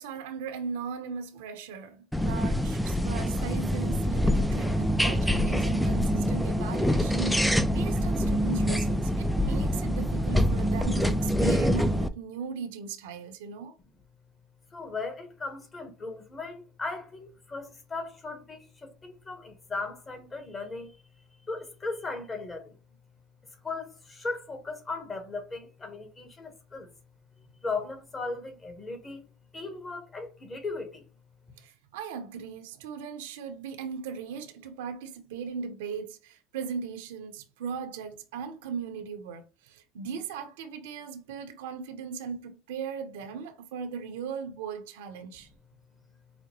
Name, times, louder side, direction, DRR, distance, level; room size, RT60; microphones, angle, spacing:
voice 1, 0.0-13.7 31.6-45.5, right 6 dB, 80° right, 0.8 m, -38 dB
sound 1, 2.1-12.1, equal, ahead, 0.4 m, -25 dB
voice 2, 14.7-21.0 21.4-22.8 23.6-26.9 27.6-29.2 29.5-31.1, left 3 dB, 25° left, 1.2 m, -37 dB
5.0 x 2.1 x 3.0 m
supercardioid pair, 95°, 0 cm